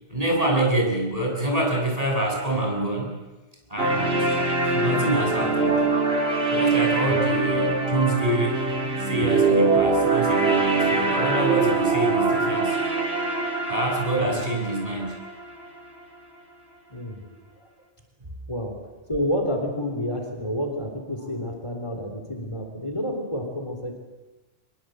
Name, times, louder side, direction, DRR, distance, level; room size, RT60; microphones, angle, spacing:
voice 1, 0.1-3.2 3.7-4.4 4.6-5.8 6.5-8.7 9.0-12.8 13.7-15.1, right 1 dB, 35° right, 0 dB, 7.1 m, -26 dB
sound 1, 3.8-15.8, right 3 dB, 65° right, 2.9 m, -23 dB
voice 2, 16.9-17.2 17.6-17.7 18.5-24.0, equal, 25° left, 3 dB, 3.6 m, -29 dB
25.5 x 21.5 x 7.9 m, 1.1 s
omnidirectional pair, 1.1 m